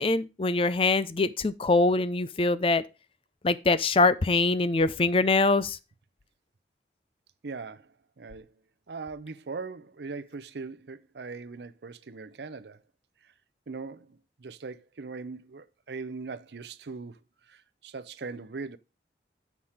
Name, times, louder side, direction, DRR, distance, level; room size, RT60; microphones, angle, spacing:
voice 1, 0.0-2.8 3.4-5.8, left 3 dB, 30° left, 0.5 m, -23 dB
voice 2, 7.4-7.9 8.2-8.5 8.9-12.8 13.7-17.2 17.5-18.8, right 4 dB, 70° right, 0.6 m, -40 dB
7.3 x 6.0 x 4.9 m
head